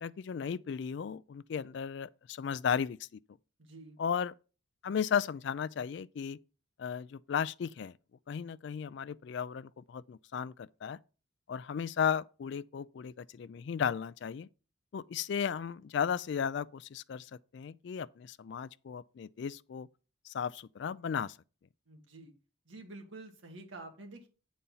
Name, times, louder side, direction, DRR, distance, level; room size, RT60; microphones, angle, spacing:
voice 1, 0.0-3.1 4.0-4.3 4.8-6.4 6.8-7.9 8.3-11.0 11.5-14.5 14.9-19.9 20.3-21.4, left 7 dB, 55° left, 0.3 m, -35 dB
voice 2, 3.6-4.0 21.9-22.3 22.7-24.3, right 2 dB, 65° right, 1.7 m, -48 dB
8.8 x 4.2 x 5.4 m
head